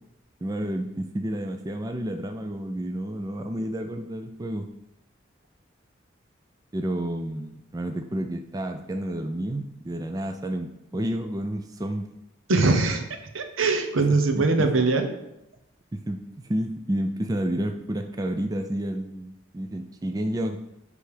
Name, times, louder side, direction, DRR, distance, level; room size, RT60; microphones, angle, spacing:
voice 1, 0.4-4.6 6.7-12.1 14.3-14.7 16.1-20.6, right 1 dB, 20° right, 5 dB, 0.4 m, -30 dB
voice 2, 12.5-13.0 13.3-15.1, right 3 dB, 80° right, 6 dB, 0.9 m, -22 dB
9.8 x 3.4 x 5.0 m, 0.86 s
head